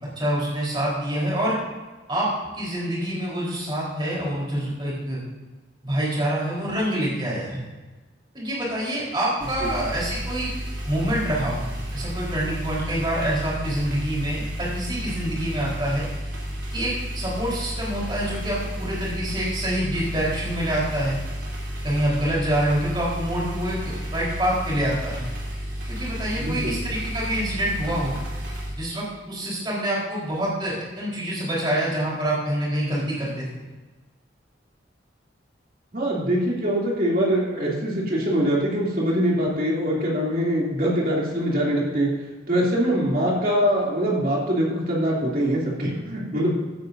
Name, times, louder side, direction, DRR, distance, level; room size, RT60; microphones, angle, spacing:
voice 1, 0.2-1.6 2.1-5.2 5.8-7.6 8.3-10.5 10.9-16.0 16.7-21.2 21.8-25.2 25.9-28.2 28.8-33.5, right 1 dB, 25° right, -6 dB, 4.0 m, -26 dB
sound 1, 9.4-28.7, equal, 70° right, 3.4 m, -32 dB
voice 2, 26.4-26.8 35.9-42.1 42.5-46.5, equal, 50° right, -4 dB, 2.8 m, -23 dB
16.0 x 10.0 x 2.7 m, 1.2 s
head